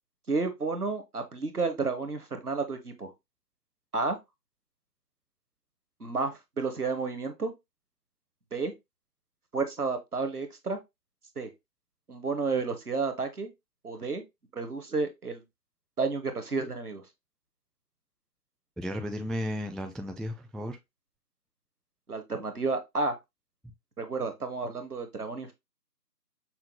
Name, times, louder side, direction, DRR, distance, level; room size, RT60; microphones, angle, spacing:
voice 1, 0.3-3.1 3.9-4.2 6.0-7.5 8.5-8.7 9.5-10.8 11.4-11.5 12.1-13.5 13.8-14.2 14.5-15.4 16.0-17.0 22.1-23.2 24.0-25.5, right 4 dB, 60° right, 0.9 m, -31 dB
voice 2, 18.8-20.8, equal, ahead, 0.4 m, -34 dB
5.6 x 2.2 x 3.0 m
figure-of-eight pair, 170°, 50 cm